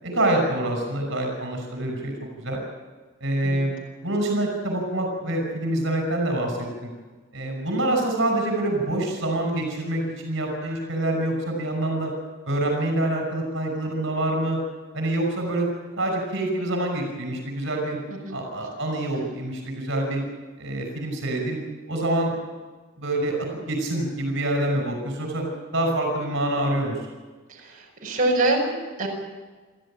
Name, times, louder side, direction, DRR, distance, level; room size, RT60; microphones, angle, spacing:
voice 1, 0.0-2.6 3.2-3.7 4.0-6.9 7.3-12.1 12.4-14.6 14.9-15.7 16.0-18.0 18.3-20.2 20.6-21.6 21.9-22.3 23.0-25.4 25.7-27.0, right 1 dB, 60° right, 3 dB, 5.8 m, -26 dB
voice 2, 27.5-29.1, right 2 dB, 40° right, -2 dB, 6.0 m, -25 dB
28.5 x 14.5 x 8.8 m, 1.3 s
head